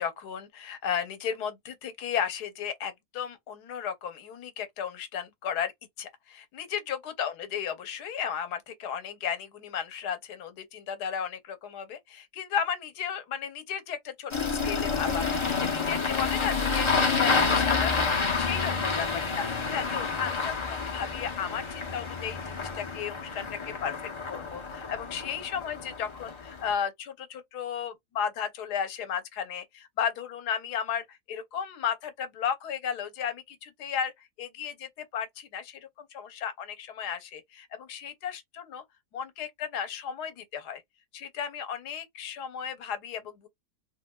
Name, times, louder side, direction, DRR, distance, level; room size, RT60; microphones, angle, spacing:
voice 1, 0.0-5.7 6.0-19.1 19.4-34.1 34.4-38.8 39.1-40.8 41.1-43.5, left 8 dB, 85° left, 1.3 m, -34 dB
Engine starting, 14.3-26.7, left 4 dB, 45° left, 0.4 m, -29 dB
3.5 x 2.6 x 2.2 m
omnidirectional pair, 1.7 m